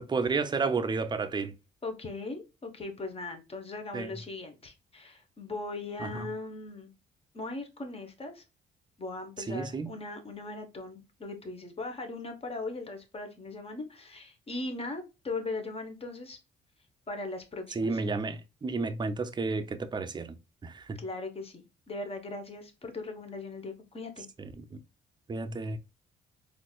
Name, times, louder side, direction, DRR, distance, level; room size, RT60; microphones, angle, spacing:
voice 1, 0.0-1.5 3.9-4.1 6.0-6.3 9.5-10.0 17.7-21.0 24.4-24.8 25.3-25.8, right 4 dB, 20° right, 0.4 m, -32 dB
voice 2, 1.8-6.9 7.3-8.4 9.0-16.4 17.1-17.9 21.0-24.3, left 2 dB, 30° left, 0.9 m, -39 dB
3.9 x 2.5 x 2.2 m
cardioid pair, 90°, 20 cm